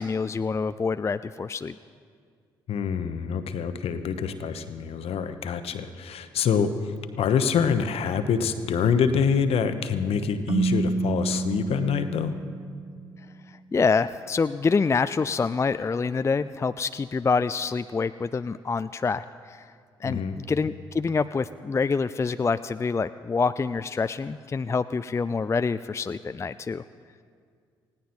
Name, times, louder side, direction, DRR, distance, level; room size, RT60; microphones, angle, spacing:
voice 1, 0.0-1.7 13.5-19.7 20.0-26.8, left 4 dB, 25° left, 12 dB, 0.4 m, -26 dB
voice 2, 2.7-12.4 20.0-20.4, left 6 dB, 60° left, 10 dB, 1.1 m, -26 dB
Keyboard (musical), 10.5-13.2, right 3 dB, 50° right, 1.3 m, -28 dB
19.5 x 16.5 x 4.5 m, 2.1 s
hypercardioid pair, 45°, 11 cm